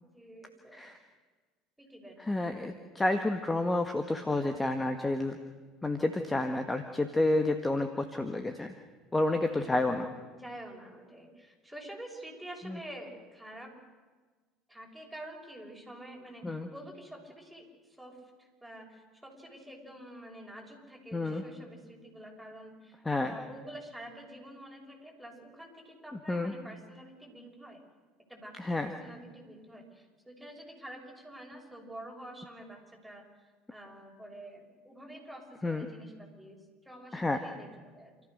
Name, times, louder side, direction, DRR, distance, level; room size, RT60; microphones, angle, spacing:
voice 1, 0.0-0.9 1.8-2.2 9.4-10.0 10.3-13.7 14.7-27.8 28.3-38.1, right 1 dB, 5° right, 0 dB, 6.9 m, -48 dB
voice 2, 2.2-5.4 5.8-8.7 9.1-10.1 12.6-12.8 16.4-16.7 21.1-21.4 23.0-23.4 26.3-26.5 28.6-28.9 35.6-35.9 37.1-37.4, left 2 dB, 15° left, 6 dB, 1.7 m, -30 dB
28.5 x 14.5 x 6.7 m, 1.4 s
hypercardioid pair, 70°, 0 cm